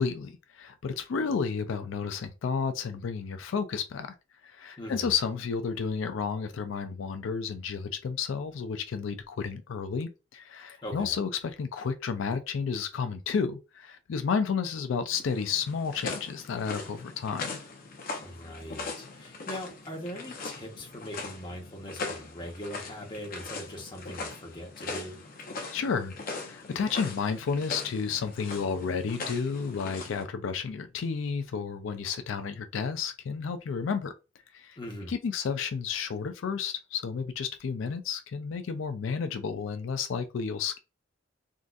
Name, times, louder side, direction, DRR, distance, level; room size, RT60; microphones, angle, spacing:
voice 1, 0.0-4.1 4.4-17.6 25.7-34.1 34.5-34.8 35.1-40.8, left 6 dB, 90° left, 0.4 m, -31 dB
voice 2, 4.8-5.1 10.8-11.2 18.2-25.2 34.8-35.1, equal, 25° left, 1.0 m, -41 dB
sound 1, 15.1-30.2, left 3 dB, 50° left, 0.7 m, -40 dB
3.7 x 2.6 x 2.3 m
head